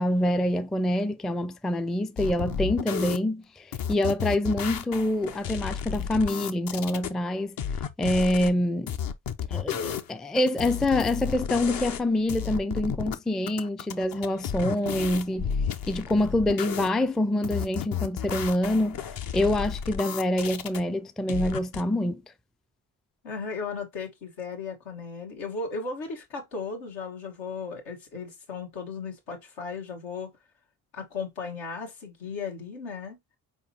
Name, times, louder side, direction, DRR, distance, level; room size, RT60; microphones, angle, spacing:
voice 1, 0.0-7.6 8.0-8.9 9.5-15.5 15.9-19.0 19.3-22.2, left 1 dB, ahead, 0.4 m, -26 dB
sound 1, 2.2-3.2 3.7-7.1 7.6-8.5 8.9-10.1 10.4-12.0 12.3-13.2 13.5-16.9 17.4-20.8 21.3-21.8, left 7 dB, 50° left, 0.7 m, -32 dB
voice 2, 23.2-30.3 30.9-33.2, left 4 dB, 80° left, 1.7 m, -36 dB
4.4 x 3.6 x 2.9 m
hypercardioid pair, 45°, 44 cm